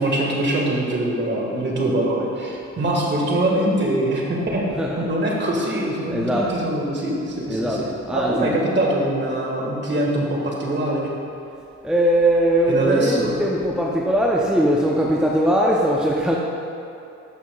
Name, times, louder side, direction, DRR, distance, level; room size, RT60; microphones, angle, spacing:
voice 1, 0.0-4.6 5.0-7.8 8.1-11.1 12.7-13.4, right 1 dB, 35° right, -2 dB, 1.6 m, -23 dB
voice 2, 4.7-5.1 6.1-6.6 7.5-8.5 11.8-16.4, right 1 dB, 5° right, -3 dB, 0.6 m, -20 dB
12.5 x 5.7 x 2.3 m, 2.7 s
cardioid pair, 90°, 30 cm